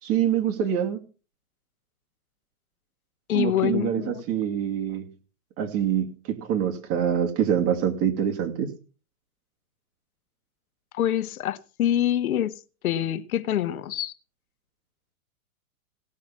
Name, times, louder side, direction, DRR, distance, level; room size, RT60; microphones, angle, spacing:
voice 1, 0.0-1.0 3.3-5.1 5.6-8.7, right 9 dB, 30° right, 2.5 m, -25 dB
voice 2, 3.3-4.2 10.9-14.1, left 11 dB, 75° left, 1.1 m, -26 dB
17.5 x 5.9 x 7.3 m
hypercardioid pair, 135°, 43 cm